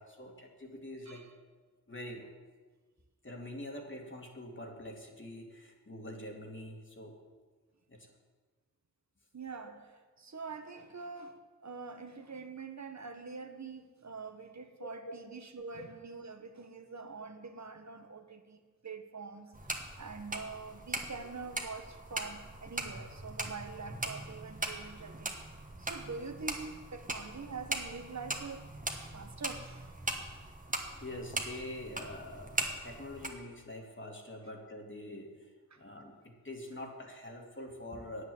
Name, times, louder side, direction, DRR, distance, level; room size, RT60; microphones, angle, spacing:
voice 1, 0.0-1.3 1.9-2.3 3.2-7.2 7.9-8.1 14.8-15.1 30.2-30.3 31.0-35.5 35.8-38.2, left 1 dB, 40° left, 1 dB, 2.0 m, -45 dB
voice 2, 9.3-9.9 10.2-25.3 25.8-28.7 29.0-29.9 35.7-35.8, right 4 dB, 65° right, 7 dB, 1.2 m, -45 dB
sound 1, 19.5-33.3, right 2 dB, 25° right, 1.4 m, -40 dB
9.3 x 8.1 x 7.7 m, 1.4 s
wide cardioid pair, 45°, 30 cm